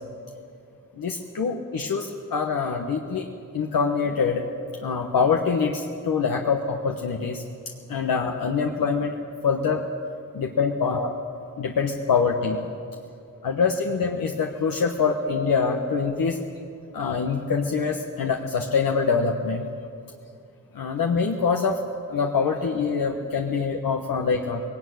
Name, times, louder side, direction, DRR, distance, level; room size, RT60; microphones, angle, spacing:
voice 1, 1.0-3.3 3.5-4.4 4.8-7.4 7.9-9.1 9.4-9.8 10.3-11.1 11.6-12.6 13.4-16.4 16.9-19.7 20.7-21.8 22.0-24.6, left 5 dB, 85° left, 2 dB, 1.3 m, -24 dB
19.5 x 18.0 x 9.4 m, 2.4 s
cardioid pair, 60°, 33 cm